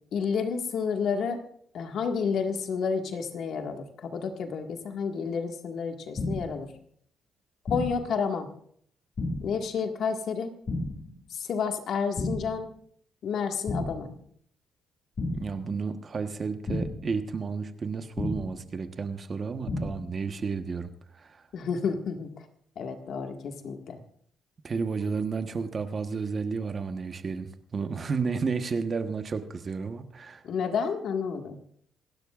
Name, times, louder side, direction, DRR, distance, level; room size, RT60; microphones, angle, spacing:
voice 1, 0.1-1.4 1.7-6.7 7.7-8.5 9.4-10.5 11.3-12.7 13.2-14.1 21.5-22.3 22.8-24.0 30.4-31.6, left 6 dB, 70° left, 4 dB, 1.8 m, -30 dB
sound 1, 6.2-6.6 7.7-8.1 9.2-9.6 10.7-11.1 12.2-12.6 13.7-14.1 15.2-15.6 16.7-17.1 18.2-18.6 19.7-20.1, left 2 dB, 45° left, 2.0 m, -32 dB
voice 2, 15.3-21.4 24.6-30.4, right 5 dB, 40° right, 8 dB, 1.2 m, -32 dB
27.0 x 12.0 x 2.5 m, 0.63 s
cardioid pair, 90°, 0 cm